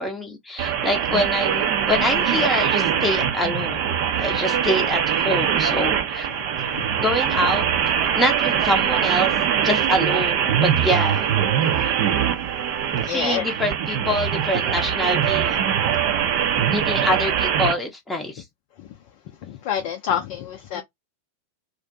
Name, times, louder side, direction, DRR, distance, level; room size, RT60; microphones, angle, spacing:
voice 1, 0.0-3.9 4.2-6.3 7.0-7.6 8.1-9.3 9.6-11.3 13.0-15.6 16.7-18.4 20.7-20.8, left 1 dB, 5° left, 0.7 m, -25 dB
sound 1, 0.6-17.7, right 8 dB, 50° right, 0.6 m, -22 dB
voice 2, 13.0-13.4 18.8-18.9 19.5-20.8, left 9 dB, 45° left, 0.5 m, -27 dB
2.5 x 2.1 x 2.6 m
figure-of-eight pair, 90°, 0 cm